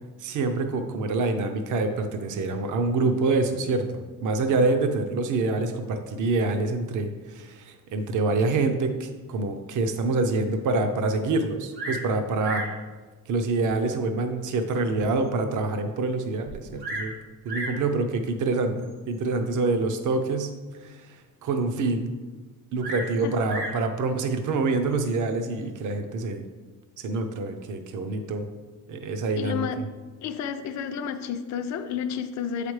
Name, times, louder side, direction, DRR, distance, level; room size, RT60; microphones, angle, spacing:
voice 1, 0.2-12.6 13.3-17.1 17.4-20.5 20.8-22.1 22.7-26.4 27.0-28.4 28.9-29.7, right 3 dB, 55° right, 6 dB, 0.6 m, -26 dB
Bird vocalization bird call bird song, 11.7-12.1 12.4-12.8 13.6-13.7 14.4-14.5 15.0-15.1 15.3-15.4 16.4-17.1 17.5-17.8 18.8-19.2 22.8-23.8 24.9-25.3, right 1 dB, 75° right, 1.9 m, -34 dB
voice 2, 29.3-29.8 30.2-32.7, left 7 dB, 50° left, 7 dB, 0.5 m, -31 dB
7.8 x 4.9 x 3.2 m, 1.3 s
cardioid pair, 155°, 38 cm